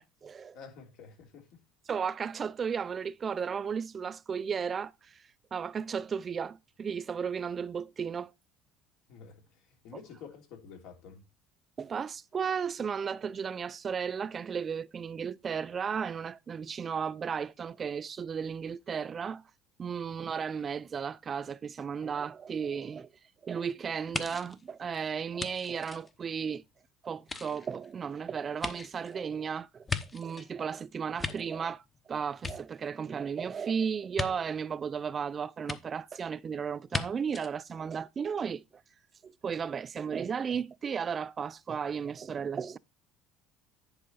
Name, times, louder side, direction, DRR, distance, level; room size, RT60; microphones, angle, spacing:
voice 1, 0.0-0.6 1.9-5.2 5.5-8.3 11.8-19.4 19.8-23.1 23.4-26.6 27.0-29.9 30.1-31.8 32.1-38.6 39.2-42.8, right 6 dB, 35° right, 0.3 m, -34 dB
voice 2, 0.5-1.6 9.1-11.2 20.0-20.2, left 6 dB, 70° left, 3.1 m, -50 dB
sound 1, 24.1-26.7 27.2-30.5 30.9-32.0 32.3-33.2 34.1-34.3 35.7-35.8 36.9-37.0 37.3-37.5, left 4 dB, 20° left, 0.9 m, -38 dB
10.5 x 4.8 x 4.0 m
supercardioid pair, 110°, 0 cm